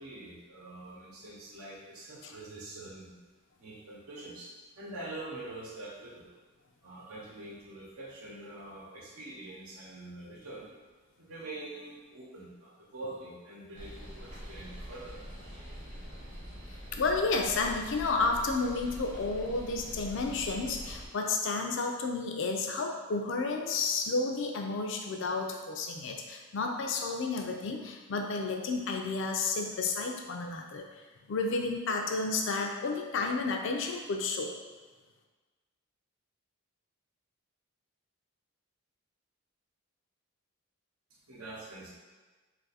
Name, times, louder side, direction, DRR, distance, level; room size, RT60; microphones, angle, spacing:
voice 1, 0.0-3.2 3.6-6.3 6.8-10.7 11.2-15.2 41.3-41.9, right 2 dB, 80° right, -5 dB, 0.9 m, -45 dB
sound 1, 13.7-21.1, equal, 35° right, 0.8 m, -44 dB
voice 2, 16.9-30.9 31.3-34.6, left 3 dB, 60° left, 2 dB, 0.4 m, -31 dB
2.6 x 2.5 x 4.0 m, 1.3 s
head